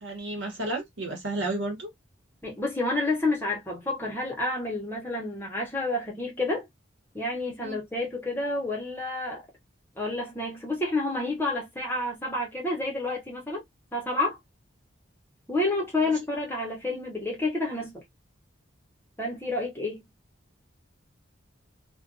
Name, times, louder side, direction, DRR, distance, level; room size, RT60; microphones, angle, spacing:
voice 1, 0.0-1.9 7.6-7.8 16.0-16.1, right 2 dB, 70° right, 1.0 m, -32 dB
voice 2, 2.4-6.7 7.1-9.4 10.0-13.6 13.9-14.4 15.5-18.0 19.2-20.0, left 2 dB, 10° left, 0.8 m, -29 dB
2.5 x 2.2 x 2.5 m
head